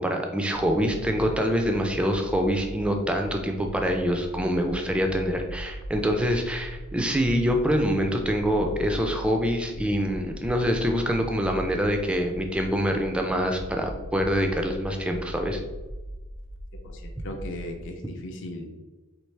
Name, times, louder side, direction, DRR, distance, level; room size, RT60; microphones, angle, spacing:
voice 1, 0.0-15.6, equal, 5° right, 3 dB, 0.3 m, -25 dB
sound 1, 0.5-17.8, equal, 80° right, 0.7 m, -40 dB
voice 2, 16.8-18.8, left 1 dB, 55° left, 2 dB, 0.5 m, -37 dB
4.5 x 2.8 x 3.2 m, 1.2 s
head